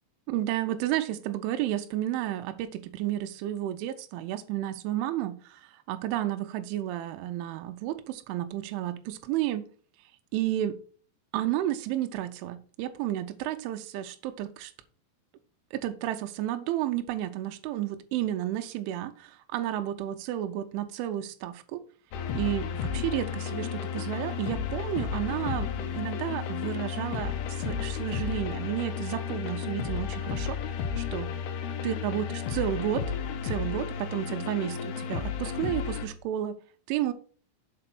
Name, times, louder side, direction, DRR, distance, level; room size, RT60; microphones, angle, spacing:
voice 1, 0.3-9.6 10.3-10.8 11.3-14.7 15.7-21.8 22.3-30.6 31.0-31.4 31.8-33.1 33.4-36.6 36.9-37.1, right 12 dB, 85° right, 3.2 m, -32 dB
sound 1, 22.1-36.1, left 7 dB, 75° left, 2.4 m, -33 dB
7.9 x 4.3 x 5.9 m
omnidirectional pair, 5.6 m